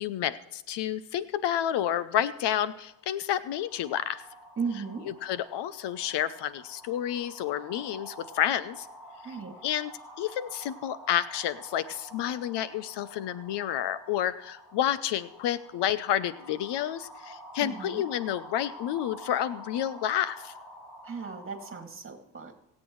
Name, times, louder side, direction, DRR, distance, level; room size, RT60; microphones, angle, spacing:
voice 1, 0.0-4.2 5.2-8.9 9.6-9.9 10.2-20.5, left 11 dB, 60° left, 16 dB, 0.7 m, -30 dB
sound 1, 2.7-21.8, equal, ahead, 3.4 m, -48 dB
voice 2, 4.6-5.1 9.2-9.6 17.6-18.0 21.0-22.5, right 5 dB, 25° right, 4 dB, 2.3 m, -36 dB
25.0 x 8.4 x 3.1 m, 0.91 s
cardioid pair, 100°, 46 cm